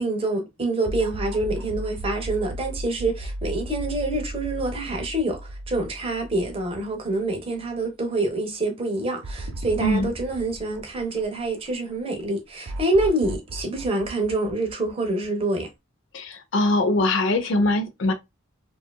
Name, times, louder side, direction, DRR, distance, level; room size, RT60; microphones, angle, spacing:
voice 1, 0.0-15.7, right 2 dB, 25° right, 0.6 m, -26 dB
sound 1, 0.8-7.2 7.6-7.7 9.2-11.7 12.6-15.4, right 1 dB, 80° right, 0.5 m, -35 dB
voice 2, 9.8-10.1 16.1-18.1, left 1 dB, 60° left, 0.5 m, -22 dB
2.7 x 2.3 x 2.2 m
head